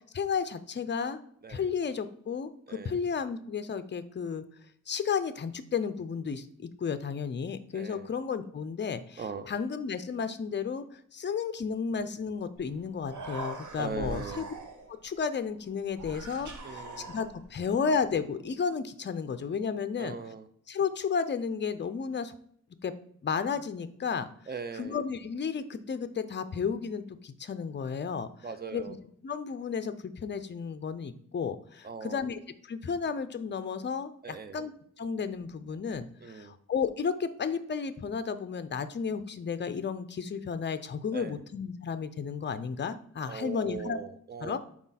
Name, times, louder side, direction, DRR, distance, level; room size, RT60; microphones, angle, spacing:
voice 1, 0.1-1.2 1.5-4.4 4.9-9.2 9.5-14.4 14.9-16.8 17.1-20.1 20.7-22.3 22.8-22.9 23.2-24.3 24.8-28.3 28.7-29.0 29.2-32.4 32.7-34.7 35.0-44.0 44.4-44.6, left 6 dB, 35° left, 11 dB, 0.5 m, -33 dB
voice 2, 2.7-3.0 7.7-8.1 9.2-9.5 13.8-14.5 16.6-17.1 20.0-20.5 24.5-25.0 28.4-29.0 31.8-32.3 34.2-34.6 36.2-36.5 41.1-41.4 43.3-44.6, right 5 dB, 30° right, 11 dB, 0.5 m, -39 dB
Human voice, 12.6-12.7 12.9-15.0 15.9-17.6, right 2 dB, 70° right, 1.1 m, -42 dB
6.1 x 4.3 x 4.0 m, 0.65 s
wide cardioid pair, 145°, 31 cm